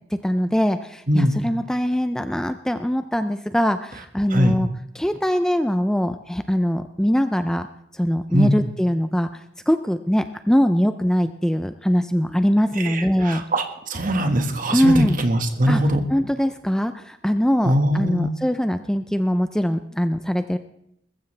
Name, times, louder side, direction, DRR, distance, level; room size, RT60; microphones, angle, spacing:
voice 1, 0.1-4.7 4.9-7.7 7.9-9.3 9.7-13.4 14.7-15.2 15.7-15.8 16.1-20.6, equal, 5° left, 10 dB, 0.4 m, -22 dB
voice 2, 12.8-16.0 17.6-18.3, equal, 45° right, 6 dB, 1.6 m, -21 dB
20.5 x 14.5 x 3.3 m, 0.77 s
head